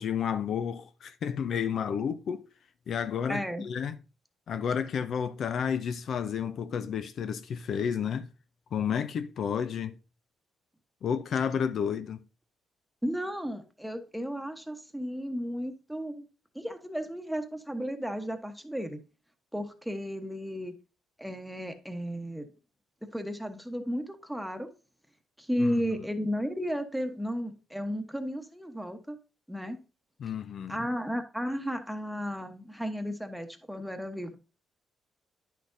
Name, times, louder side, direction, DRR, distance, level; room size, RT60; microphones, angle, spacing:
voice 1, 0.0-2.4 2.9-4.0 4.5-8.3 8.7-9.9 11.0-12.2 25.6-25.8 30.2-30.9, left 7 dB, 60° left, 0.4 m, -31 dB
voice 2, 3.3-3.6 13.0-16.3 16.5-19.0 19.5-20.7 21.2-22.5 23.0-24.7 25.4-29.2 29.5-29.8 30.7-34.4, equal, ahead, 1.1 m, -34 dB
10.0 x 5.9 x 2.6 m
cardioid pair, 90°, 0 cm